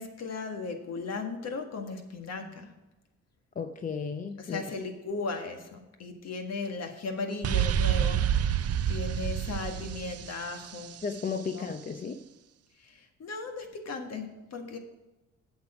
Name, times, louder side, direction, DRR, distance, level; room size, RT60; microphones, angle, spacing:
voice 1, 0.0-2.7 4.4-8.6 8.8-10.9 11.4-11.7 12.8-14.8, left 3 dB, 55° left, 4 dB, 1.7 m, -37 dB
voice 2, 3.6-4.7 11.0-12.2, left 5 dB, 25° left, 8 dB, 0.6 m, -34 dB
sound 1, 7.4-11.2, right 10 dB, 55° right, 0.5 m, -28 dB
8.2 x 7.0 x 6.1 m, 1.0 s
cardioid pair, 90°, 30 cm